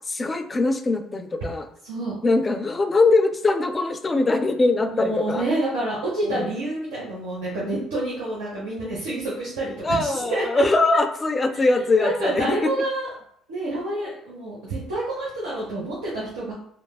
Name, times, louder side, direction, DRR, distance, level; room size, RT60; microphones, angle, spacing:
voice 1, 0.1-1.7 2.2-5.4 6.2-6.5 9.8-12.7, left 3 dB, 30° left, 8 dB, 0.3 m, -22 dB
voice 2, 1.8-2.1 4.9-10.6 11.5-11.6 12.0-13.2 13.5-16.5, right 1 dB, 85° right, -7 dB, 0.7 m, -28 dB
3.1 x 2.0 x 2.3 m, 0.68 s
hypercardioid pair, 55°, 0 cm